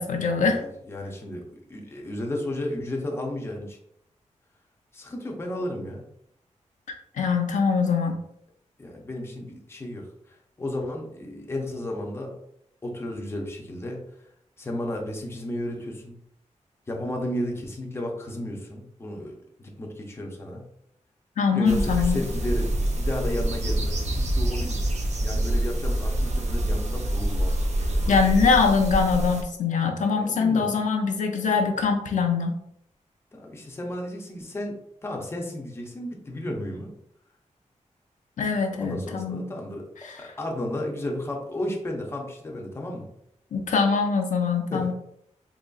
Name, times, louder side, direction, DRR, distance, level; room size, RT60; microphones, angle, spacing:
voice 1, 0.0-0.6 7.2-8.2 21.4-22.2 28.1-32.6 38.4-39.4 40.0-40.2 43.5-44.9, left 5 dB, 85° left, 3 dB, 0.6 m, -23 dB
voice 2, 0.5-1.4 1.7-3.8 4.9-6.0 8.8-12.3 12.8-14.0 14.6-16.2 16.9-19.3 19.6-20.6 21.5-27.5 27.9-28.5 30.2-30.8 33.3-34.8 35.0-36.9 38.7-39.9 40.2-43.1 44.7-44.9, left 1 dB, 20° left, 0 dB, 0.5 m, -33 dB
sound 1, 21.7-29.4, right 1 dB, 65° right, 0.6 m, -26 dB
3.9 x 3.0 x 2.3 m, 0.73 s
wide cardioid pair, 175°, 13 cm